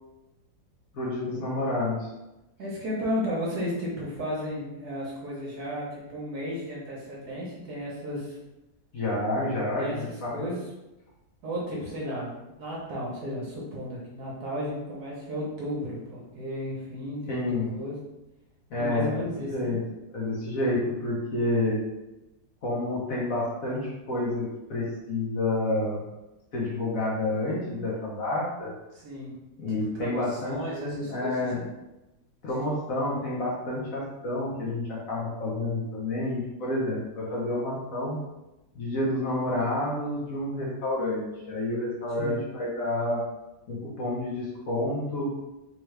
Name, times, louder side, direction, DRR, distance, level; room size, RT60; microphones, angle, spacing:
voice 1, 0.9-2.1 8.9-10.5 17.3-17.7 18.7-19.8 20.1-21.8 22.6-26.0 26.5-28.7 29.6-31.6 32.4-38.2 38.7-43.2 43.7-45.3, left 2 dB, 55° left, -6 dB, 1.2 m, -29 dB
voice 2, 2.6-8.4 9.7-10.6 11.4-18.0 18.8-19.7 28.9-29.4 29.7-31.7 42.2-42.4, equal, 60° right, -4 dB, 1.3 m, -34 dB
3.6 x 2.9 x 3.3 m, 0.99 s
omnidirectional pair, 2.0 m